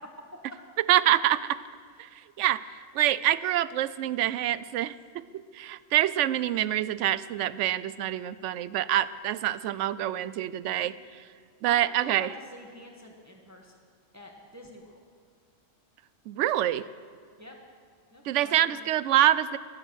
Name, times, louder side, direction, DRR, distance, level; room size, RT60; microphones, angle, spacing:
voice 1, 0.9-1.6 2.4-2.6 2.9-10.9 11.6-12.3 16.3-16.9 18.3-19.6, right 12 dB, 80° right, 16 dB, 0.9 m, -26 dB
voice 2, 11.7-13.8 14.1-15.0 17.4-17.5 18.1-18.9, left 1 dB, 15° right, 1 dB, 1.5 m, -47 dB
23.0 x 9.0 x 6.3 m, 2.1 s
omnidirectional pair, 1.3 m